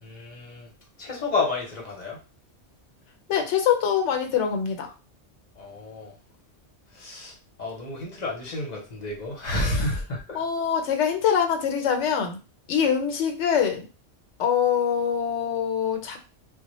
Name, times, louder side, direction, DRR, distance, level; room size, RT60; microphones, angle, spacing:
voice 1, 0.0-0.7 1.0-2.2 5.6-6.1 6.9-7.3 7.6-10.4, left 2 dB, 45° left, -1 dB, 0.8 m, -30 dB
voice 2, 3.3-4.9 10.3-12.4 12.7-13.9 14.4-16.2, left 8 dB, 80° left, 4 dB, 0.9 m, -24 dB
2.1 x 2.1 x 2.9 m, 0.32 s
omnidirectional pair, 1.2 m